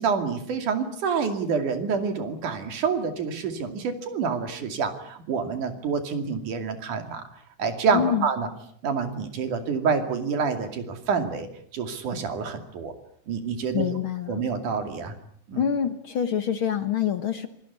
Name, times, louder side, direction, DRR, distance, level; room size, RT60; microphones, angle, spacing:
voice 1, 0.0-7.2 7.6-8.5 8.8-11.5 11.7-12.9 13.3-14.0 14.3-15.1 15.5-15.6, right 5 dB, 85° right, 7 dB, 4.1 m, -27 dB
voice 2, 7.9-8.3 13.7-14.4 15.6-17.5, left 9 dB, 55° left, 10 dB, 1.7 m, -26 dB
26.5 x 20.0 x 8.3 m, 0.65 s
omnidirectional pair, 3.5 m